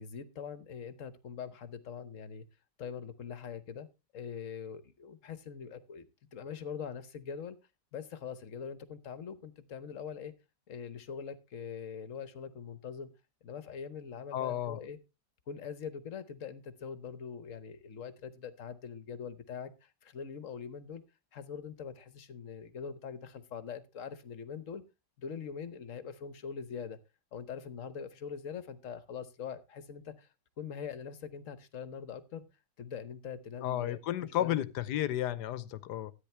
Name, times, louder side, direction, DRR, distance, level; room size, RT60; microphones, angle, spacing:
voice 1, 0.0-2.4 2.8-3.9 4.1-7.6 7.9-10.3 10.7-13.1 13.4-15.0 15.5-21.0 21.3-24.8 25.2-27.0 27.3-30.3 30.6-32.4 32.8-34.6, left 7 dB, 50° left, 1.2 m, -43 dB
voice 2, 14.3-14.8 33.6-36.1, left 12 dB, 70° left, 1.3 m, -33 dB
13.5 x 9.5 x 3.3 m
omnidirectional pair, 1.9 m